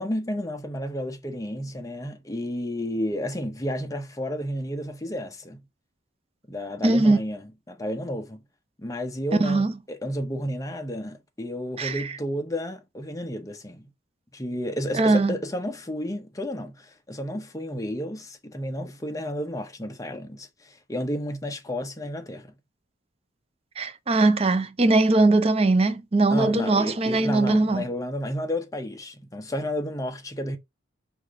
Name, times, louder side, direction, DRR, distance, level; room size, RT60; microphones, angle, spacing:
voice 1, 0.0-5.6 6.5-7.4 7.7-8.4 8.8-13.9 14.3-22.5 26.3-30.6, left 1 dB, 15° left, 0.6 m, -32 dB
voice 2, 6.8-7.2 9.4-9.7 11.8-12.1 14.9-15.4 23.8-27.8, right 2 dB, 30° right, 0.5 m, -21 dB
4.8 x 2.5 x 3.5 m
head